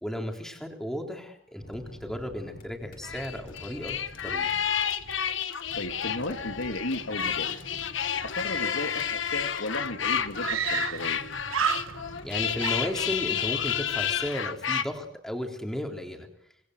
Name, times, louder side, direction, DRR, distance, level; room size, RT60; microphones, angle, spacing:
voice 1, 0.0-4.0 4.2-4.5 12.2-16.3, left 1 dB, ahead, 2 dB, 3.6 m, -34 dB
sound 1, 1.6-14.3, equal, 50° left, 5.0 m, -49 dB
sound 2, 3.0-14.8, left 8 dB, 70° left, 1.4 m, -30 dB
voice 2, 5.7-7.5 8.4-11.2, left 2 dB, 85° left, 6 dB, 2.5 m, -34 dB
Screaming, 9.3-9.4 9.6-9.7 10.4-11.2 11.5-12.3 12.6-13.5, right 7 dB, 90° right, 1.2 m, -30 dB
26.5 x 20.5 x 8.0 m, 0.81 s
head